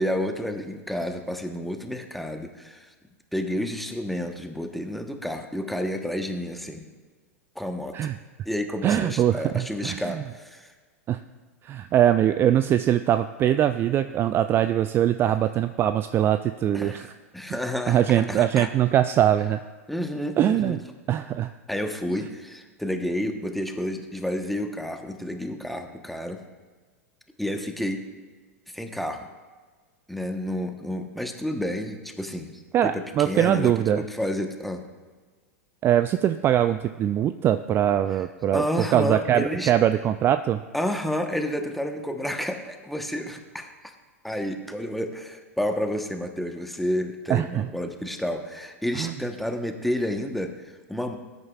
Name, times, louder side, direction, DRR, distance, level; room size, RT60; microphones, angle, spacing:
voice 1, 0.0-2.9 3.3-6.9 7.5-8.1 8.4-10.7 16.7-18.7 19.9-20.8 21.7-26.4 27.4-28.0 28.7-29.3 30.1-34.8 38.5-39.7 40.7-43.9 44.2-51.2, left 1 dB, ahead, 5 dB, 1.1 m, -30 dB
voice 2, 8.8-10.2 11.1-11.2 11.6-17.1 17.9-19.6 20.4-20.8 21.1-21.5 32.7-34.0 35.8-40.6 47.3-47.7 49.0-49.1, right 11 dB, 30° right, 11 dB, 0.3 m, -22 dB
19.0 x 9.6 x 2.4 m, 1.4 s
figure-of-eight pair, 95°, 8 cm